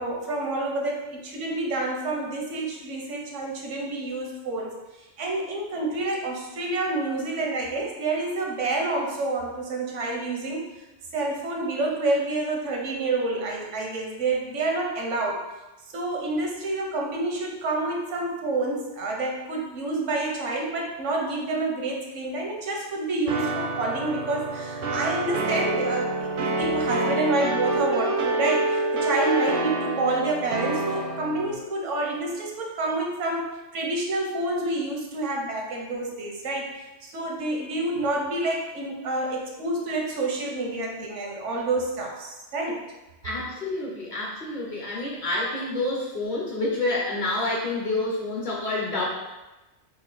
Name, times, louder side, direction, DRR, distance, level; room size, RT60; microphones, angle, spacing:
voice 1, 0.0-4.7 5.2-10.6 11.1-15.4 15.9-42.8 46.0-46.1, right 2 dB, 85° right, 0 dB, 1.1 m, -28 dB
sound 1, 23.3-31.5, right 2 dB, 60° right, 0.6 m, -27 dB
voice 2, 43.2-49.1, left 2 dB, 50° left, -3 dB, 0.7 m, -28 dB
3.1 x 2.5 x 3.7 m, 1.0 s
omnidirectional pair, 1.2 m